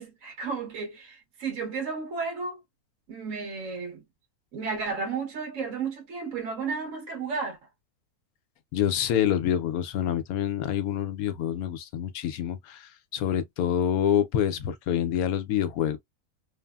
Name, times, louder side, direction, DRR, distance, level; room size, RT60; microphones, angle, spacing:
voice 1, 0.0-2.6 3.1-4.0 4.5-7.6, right 5 dB, 60° right, 1.6 m, -33 dB
voice 2, 8.7-16.0, left 10 dB, 75° left, 1.0 m, -27 dB
3.3 x 2.0 x 2.2 m
omnidirectional pair, 1.6 m